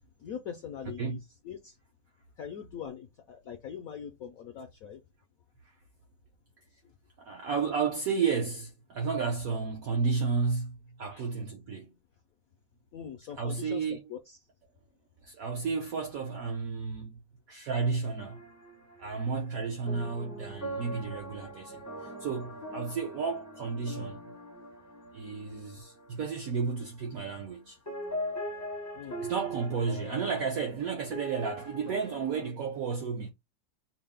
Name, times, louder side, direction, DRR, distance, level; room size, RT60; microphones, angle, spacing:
voice 1, 0.2-1.2 1.4-1.8 2.4-5.0 6.7-6.9 11.1-11.3 12.9-14.4 28.9-29.3, left 8 dB, 75° left, 0.8 m, -42 dB
voice 2, 7.2-12.0 13.4-14.0 15.2-17.2 17.5-18.4 19.0-24.2 25.1-27.8 29.2-33.3, right 5 dB, 70° right, 0.8 m, -32 dB
sound 1, 18.2-27.6 27.9-32.5, equal, 20° left, 0.4 m, -42 dB
4.7 x 2.0 x 3.4 m
omnidirectional pair, 2.1 m